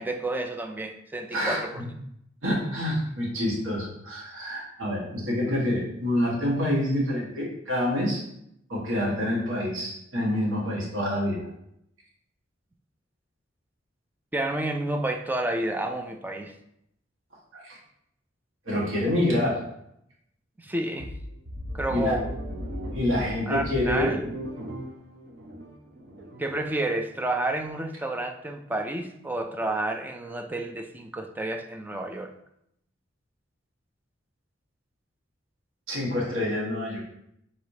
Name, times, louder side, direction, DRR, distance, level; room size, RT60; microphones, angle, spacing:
voice 1, 0.0-1.8 14.3-16.5 20.6-21.1 21.7-22.3 23.5-24.3 26.4-32.3, right 2 dB, 10° right, 5 dB, 0.3 m, -30 dB
voice 2, 1.3-1.9 2.4-8.2 8.7-11.4 17.5-17.8 18.7-19.6 21.9-22.2 22.9-24.1 35.9-37.0, left 1 dB, 85° right, -4 dB, 1.5 m, -27 dB
sound 1, 21.0-26.6, equal, 60° right, 0.8 m, -37 dB
4.8 x 4.1 x 2.7 m, 0.76 s
head